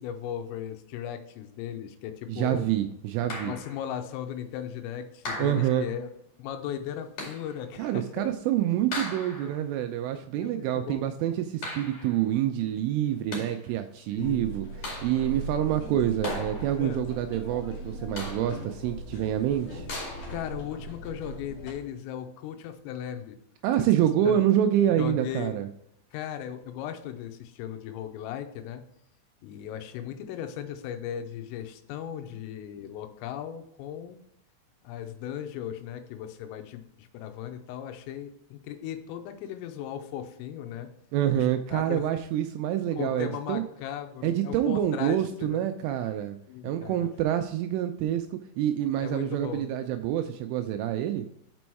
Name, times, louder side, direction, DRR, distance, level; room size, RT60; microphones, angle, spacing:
voice 1, 0.0-2.6 3.4-6.1 6.4-8.3 9.4-9.7 10.4-11.1 14.1-14.5 16.8-17.1 20.3-23.4 23.8-23.9 24.2-24.4 25.0-25.6 26.1-28.8 29.4-34.2 34.8-40.9 41.3-42.1 42.9-45.7 46.5-47.1 49.0-49.7, left 10 dB, 85° left, 8 dB, 3.3 m, -37 dB
voice 2, 2.3-3.5 5.4-5.9 7.8-14.7 15.0-19.9 23.6-25.7 41.1-43.6 44.2-46.4 46.6-51.3, right 11 dB, 85° right, 7 dB, 2.8 m, -27 dB
sound 1, 3.3-3.9 5.2-6.0 7.2-7.6 8.9-9.6 11.6-12.2 13.1-13.7 14.8-15.4 16.2-17.0 18.2-18.7 19.9-20.5, left 2 dB, 45° left, 2.3 m, -38 dB
sound 2, 14.2-21.7, right 2 dB, 65° left, 2.0 m, -39 dB
6.2 x 6.1 x 4.5 m, 0.73 s
omnidirectional pair, 6.0 m